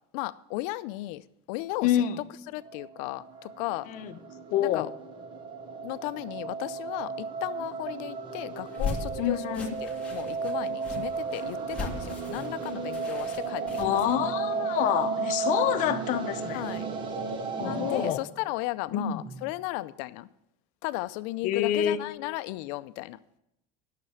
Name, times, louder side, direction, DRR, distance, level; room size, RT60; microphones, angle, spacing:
voice 1, 0.1-2.0 2.5-3.9 4.6-4.9 5.8-14.0 16.5-16.9 17.6-20.3 20.8-23.2, left 18 dB, 75° left, 0.5 m, -35 dB
voice 2, 1.8-2.2 3.9-4.2 4.5-4.9 9.2-9.7 13.8-16.6 17.6-18.2 18.9-19.2 21.4-22.0, left 11 dB, 50° left, 0.8 m, -27 dB
sound 1, 2.6-18.1, right 5 dB, 30° right, 0.9 m, -34 dB
sound 2, 8.6-14.2, left 4 dB, 5° left, 2.0 m, -38 dB
sound 3, 12.3-12.9 14.1-14.8 15.8-16.4 17.6-18.1 19.2-19.5, right 3 dB, 15° right, 2.6 m, -48 dB
9.9 x 6.7 x 8.7 m
cardioid pair, 160°, 16 cm